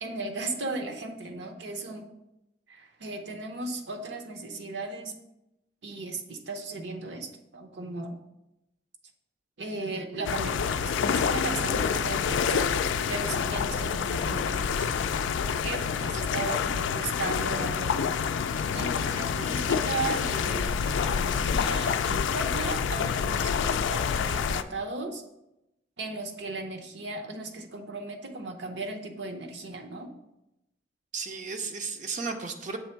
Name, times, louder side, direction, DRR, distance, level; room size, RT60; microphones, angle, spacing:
voice 1, 0.0-2.1 2.7-5.2 5.8-8.2 9.6-12.8 13.1-14.9 15.5-18.2 18.7-25.2 26.0-30.1, right 3 dB, 70° right, 4 dB, 0.8 m, -36 dB
sound 1, 10.2-24.6, left 6 dB, 85° left, 0.3 m, -27 dB
voice 2, 31.1-32.8, right 4 dB, 40° right, 5 dB, 0.5 m, -34 dB
7.0 x 3.4 x 4.4 m, 0.89 s
head